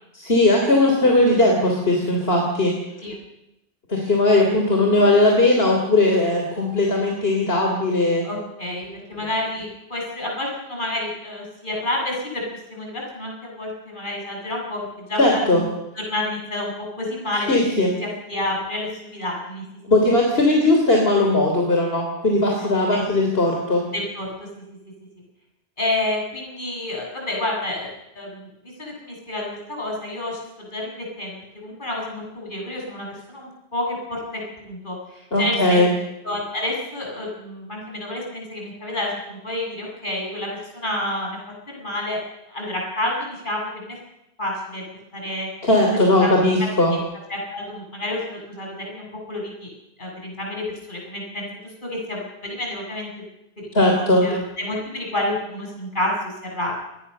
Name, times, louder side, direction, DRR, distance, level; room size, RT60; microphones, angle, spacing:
voice 1, 0.1-2.7 3.9-8.3 15.2-15.6 17.5-17.9 19.9-23.8 35.3-35.9 45.6-46.9 53.7-54.2, left 2 dB, 70° left, 1 dB, 3.7 m, -18 dB
voice 2, 8.2-15.7 15.9-16.7 17.0-17.8 18.3-19.6 22.9-23.0 23.9-24.3 25.8-27.9 28.2-30.4 30.7-35.8 36.2-41.4 41.7-42.2 42.5-44.0 44.4-44.8 45.1-45.5 46.2-46.3 46.9-47.0 47.3-49.7 50.0-51.5 51.8-53.2 53.6-56.7, left 1 dB, 50° left, -1 dB, 7.9 m, -29 dB
28.0 x 20.0 x 6.8 m, 0.90 s
omnidirectional pair, 1.0 m